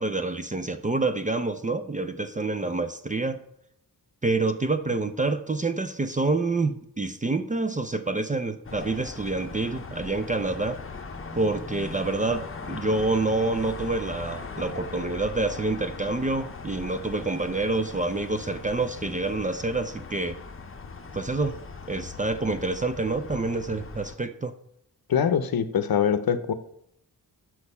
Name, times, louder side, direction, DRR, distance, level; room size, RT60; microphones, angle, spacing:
voice 1, 0.0-3.4 4.2-10.8 11.3-20.4 21.1-21.6 21.9-24.5, right 3 dB, 20° right, 10 dB, 0.4 m, -27 dB
sound 1, 8.6-24.1, left 4 dB, 35° left, 0.7 m, -40 dB
voice 2, 25.1-26.5, left 8 dB, 65° left, 12 dB, 0.7 m, -23 dB
6.3 x 6.0 x 5.4 m, 0.74 s
wide cardioid pair, 125°, 39 cm